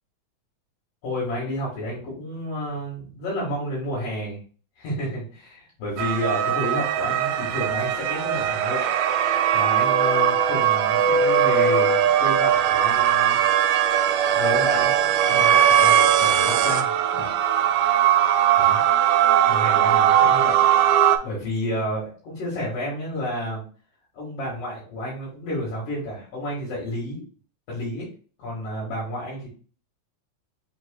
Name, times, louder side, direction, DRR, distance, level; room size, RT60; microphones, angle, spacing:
voice 1, 1.0-4.4 4.8-8.9 9.5-13.4 14.3-14.9 15.2-17.3 18.6-18.8 19.5-20.6 21.2-23.6 24.1-27.2 27.7-28.1 28.4-29.5, equal, 70° left, -6 dB, 3.3 m, -30 dB
sound 1, 6.0-21.2, right 9 dB, 90° right, 2.4 m, -20 dB
6.4 x 3.7 x 2.2 m, 0.39 s
omnidirectional pair, 4.1 m